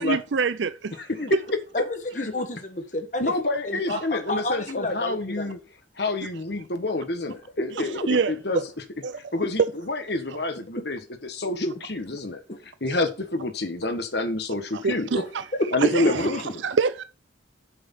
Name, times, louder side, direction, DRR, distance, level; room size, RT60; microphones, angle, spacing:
voice 1, 0.0-1.0 1.3-1.4 3.9-4.0 8.1-8.6 9.0-9.2 9.6-9.7 10.3-10.4 14.7-15.4 15.8-16.3 16.6-17.0, right 5 dB, 70° right, 0.5 m, -25 dB
voice 2, 1.7-3.3 3.6-5.5 7.6-8.1 11.6-11.7 12.5-12.6 15.1-15.2 15.6-15.7 16.0-16.4, left 1 dB, 40° left, 1.3 m, -29 dB
voice 3, 3.2-5.6 6.0-8.6 9.3-9.6 9.9-12.4 12.8-15.1 15.7-16.4, left 2 dB, 55° left, 1.5 m, -28 dB
7.8 x 6.2 x 5.7 m
head